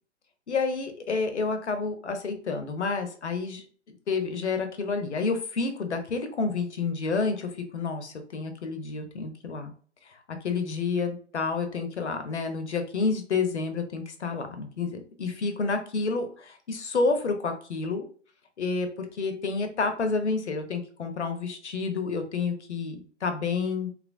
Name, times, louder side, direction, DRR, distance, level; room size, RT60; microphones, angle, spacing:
voice 1, 0.5-9.7 10.1-18.0 18.6-23.9, left 4 dB, 70° left, 7 dB, 0.7 m, -29 dB
3.0 x 2.5 x 2.4 m, 0.43 s
figure-of-eight pair, 125°, 36 cm